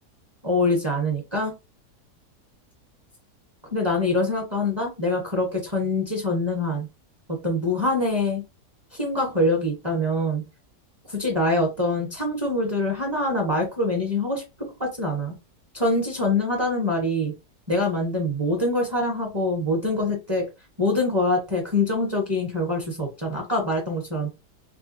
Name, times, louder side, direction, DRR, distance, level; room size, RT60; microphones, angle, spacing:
voice 1, 0.4-1.5 3.7-6.9 7.3-8.4 8.9-10.4 11.1-14.4 14.8-15.3 15.7-17.3 17.7-20.5 20.8-24.3, left 2 dB, 20° right, -1 dB, 0.7 m, -24 dB
4.9 x 2.1 x 2.5 m, 0.25 s
omnidirectional pair, 1.8 m